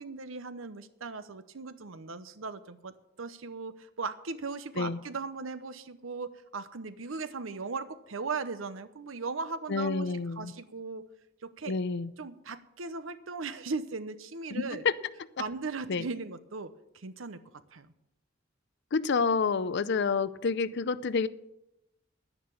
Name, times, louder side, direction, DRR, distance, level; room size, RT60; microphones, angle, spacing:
voice 1, 0.0-11.1 11.4-11.8 12.2-14.8 15.4-17.4 17.7-17.9, right 4 dB, 85° right, 13 dB, 0.9 m, -38 dB
voice 2, 9.7-10.5 11.7-12.1 14.5-15.0 15.9-16.0 18.9-21.3, left 5 dB, 60° left, 16 dB, 0.6 m, -28 dB
10.5 x 10.0 x 7.0 m, 0.89 s
head